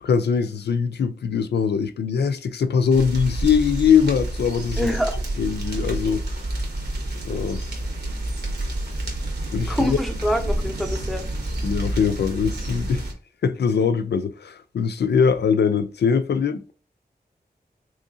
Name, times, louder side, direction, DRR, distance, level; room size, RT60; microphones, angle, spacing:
voice 1, 0.0-4.9 5.4-6.2 7.2-7.6 9.5-10.0 11.6-13.0 13.4-16.7, left 6 dB, 90° left, 0.4 m, -22 dB
sound 1, 2.9-13.1, right 1 dB, 80° right, 1.2 m, -29 dB
voice 2, 4.8-5.2 9.7-11.3, equal, ahead, 0.6 m, -25 dB
3.7 x 3.0 x 2.6 m
wide cardioid pair, 115°, 17 cm